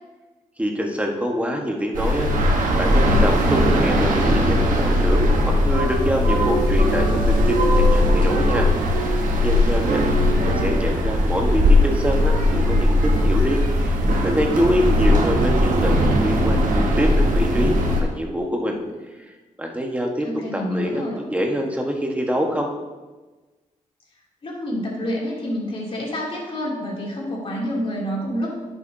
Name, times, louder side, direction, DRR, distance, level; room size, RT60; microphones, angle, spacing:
voice 1, 0.6-2.3 2.8-5.3 5.6-10.0 10.4-18.8 19.6-20.3 20.5-22.7, equal, 10° right, 1 dB, 1.3 m, -25 dB
sound 1, 1.9-18.0, left 1 dB, 90° right, 1.1 m, -19 dB
voice 2, 9.9-10.6 20.2-21.2 24.4-28.5, equal, 45° left, -4 dB, 2.8 m, -28 dB
10.5 x 6.9 x 2.7 m, 1.2 s
cardioid pair, 90°, 13 cm